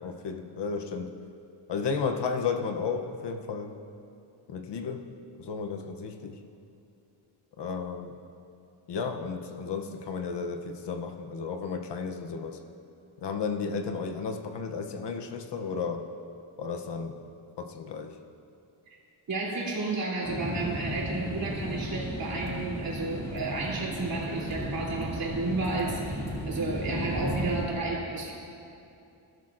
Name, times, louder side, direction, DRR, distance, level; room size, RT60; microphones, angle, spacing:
voice 1, 0.0-1.1 1.7-3.7 4.5-5.1 5.4-6.4 7.6-8.2 8.9-12.6 13.2-16.1 16.6-17.2 17.6-18.2, left 5 dB, 55° left, 5 dB, 0.8 m, -33 dB
voice 2, 19.3-28.3, right 2 dB, 45° right, -4 dB, 3.3 m, -32 dB
sound 1, 20.2-27.7, equal, 5° left, 2.8 m, -34 dB
20.5 x 12.0 x 2.5 m, 2.7 s
wide cardioid pair, 150°, 48 cm